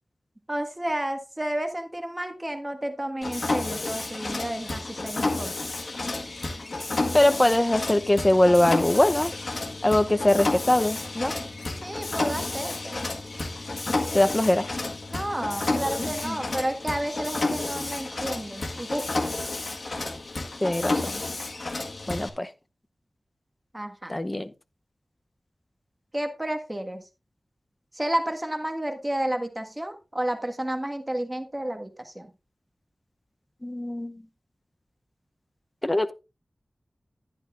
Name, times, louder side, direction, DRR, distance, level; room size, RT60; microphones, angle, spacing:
voice 1, 0.5-5.5 11.8-13.1 15.1-19.3 23.7-24.1 26.1-27.0 27.9-32.3, right 1 dB, 20° right, 1.6 m, -31 dB
Mechanisms, 3.2-22.3, left 2 dB, 60° left, 1.6 m, -31 dB
voice 2, 7.1-9.3 9.8-11.3 14.1-14.7 16.0-16.4 20.6-21.2 22.1-22.5 24.1-24.5 33.6-34.2 35.8-36.1, left 1 dB, 20° left, 0.7 m, -22 dB
11.0 x 10.5 x 2.5 m
wide cardioid pair, 70°, 0 cm